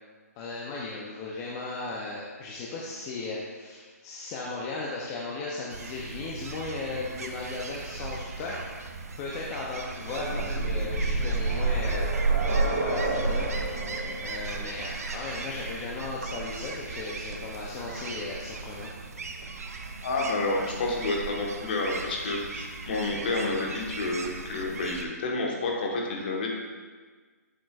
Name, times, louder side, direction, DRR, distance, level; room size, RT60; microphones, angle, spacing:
voice 1, 0.4-8.9 9.2-12.1 12.4-13.5 13.9-18.9, left 3 dB, 15° left, -4 dB, 0.4 m, -36 dB
sound 1, 5.7-25.1, right 4 dB, 60° right, 0.7 m, -39 dB
sound 2, 9.8-17.6 18.8-18.9 19.2-19.3, right 3 dB, 25° right, 1.4 m, -29 dB
voice 2, 20.0-26.5, left 2 dB, 35° left, -1 dB, 1.1 m, -29 dB
7.6 x 7.3 x 2.3 m, 1.5 s
hypercardioid pair, 170°, 9 cm